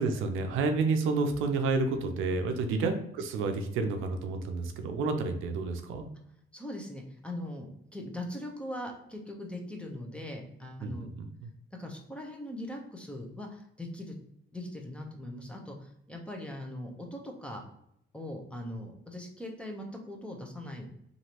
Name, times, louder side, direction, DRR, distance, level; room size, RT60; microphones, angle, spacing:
voice 1, 0.0-6.1 10.8-11.5, right 3 dB, 90° right, 6 dB, 0.5 m, -30 dB
voice 2, 6.5-11.1 11.8-14.2 14.5-17.6 18.1-20.9, left 1 dB, 5° left, 1 dB, 0.7 m, -40 dB
3.0 x 2.6 x 2.8 m, 0.74 s
cardioid pair, 90°, 20 cm